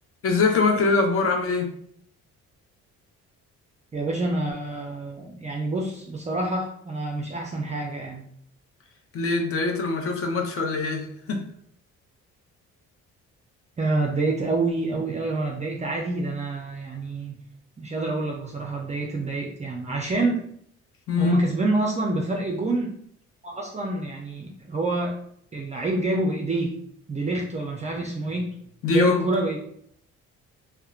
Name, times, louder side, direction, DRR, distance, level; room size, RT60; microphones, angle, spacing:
voice 1, 0.2-1.7 9.1-11.4 21.1-21.4 28.8-29.3, left 4 dB, 50° left, 3 dB, 0.6 m, -23 dB
voice 2, 3.9-8.3 13.8-17.4 17.8-20.4 21.2-22.9 23.4-25.2 25.5-26.8 27.1-28.5 28.9-29.6, right 2 dB, 25° right, -1 dB, 0.4 m, -27 dB
2.8 x 2.1 x 2.3 m, 0.67 s
cardioid pair, 90°, 30 cm